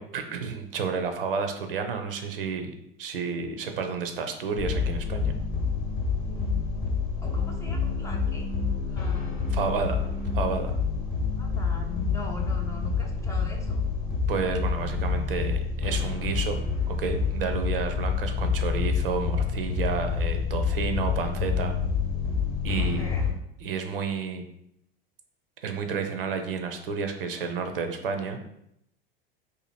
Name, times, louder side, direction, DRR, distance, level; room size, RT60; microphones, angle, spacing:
voice 1, 0.0-2.7 3.0-5.3 9.5-10.0 10.3-10.7 14.3-21.7 22.6-23.1 23.6-24.4 25.6-28.4, right 5 dB, 65° right, 6 dB, 0.6 m, -31 dB
sound 1, 4.6-23.3, left 5 dB, 45° left, 0.9 m, -28 dB
voice 2, 6.3-6.6 7.2-8.5 8.9-9.3 11.4-13.9 22.8-23.3, left 4 dB, 10° left, 0 dB, 0.3 m, -41 dB
2.7 x 2.6 x 4.1 m, 0.77 s
figure-of-eight pair, 80°, 29 cm